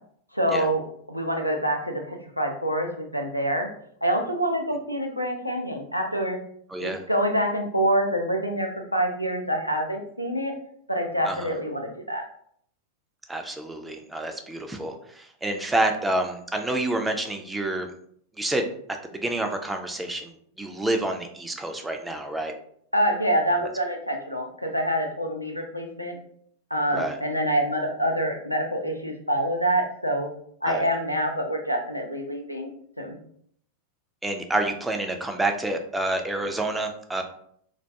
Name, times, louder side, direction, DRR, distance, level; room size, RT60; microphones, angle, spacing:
voice 1, 0.3-3.7 4.0-6.4 6.8-10.5 10.9-12.2 22.9-26.2 26.7-30.3 30.6-32.7 33.0-33.2, equal, 90° left, 2 dB, 0.4 m, -26 dB
voice 2, 6.7-7.0 11.2-11.5 13.3-17.9 18.4-18.7 19.0-22.5 23.6-23.7 26.9-27.2 30.6-30.9 34.2-37.2, right 2 dB, 10° right, 4 dB, 0.3 m, -28 dB
2.3 x 2.1 x 2.6 m, 0.64 s
figure-of-eight pair, 90°, 0 cm